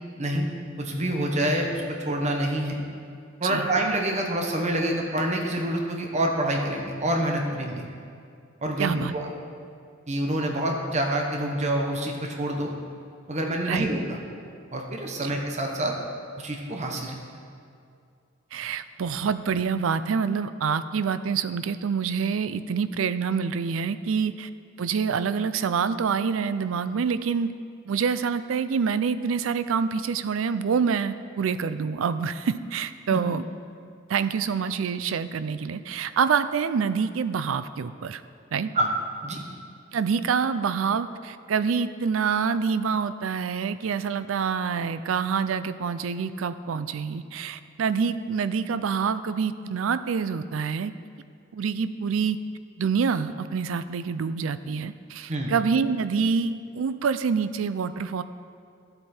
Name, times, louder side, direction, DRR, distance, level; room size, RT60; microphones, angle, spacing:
voice 1, 0.2-0.5 0.8-2.8 3.4-7.9 8.6-9.3 10.1-12.7 13.3-14.2 14.7-15.9 16.4-17.1 33.1-33.2 38.7-38.9 39.2-39.4 55.3-55.5, right 1 dB, 35° right, 1 dB, 1.1 m, -27 dB
voice 2, 8.8-9.1 13.7-13.9 15.2-15.3 18.5-24.5 24.8-27.5 27.9-33.4 34.1-38.2 38.5-38.7 39.9-50.9 51.5-52.4 52.8-58.2, right 6 dB, 85° right, 13 dB, 0.4 m, -26 dB
12.0 x 7.8 x 4.3 m, 2.4 s
head